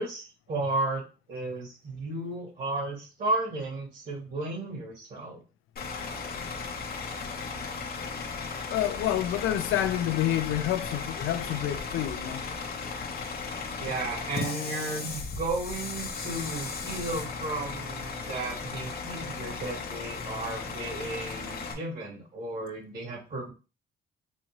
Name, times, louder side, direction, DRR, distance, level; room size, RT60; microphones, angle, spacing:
voice 1, 0.0-5.4 13.8-23.5, right 2 dB, 45° right, 2.1 m, -34 dB
Bus / Idling, 5.8-21.7, left 4 dB, 50° left, 0.8 m, -36 dB
voice 2, 8.7-12.4, left 12 dB, 85° left, 0.5 m, -28 dB
4.2 x 2.3 x 3.0 m
cardioid pair, 90°, 20 cm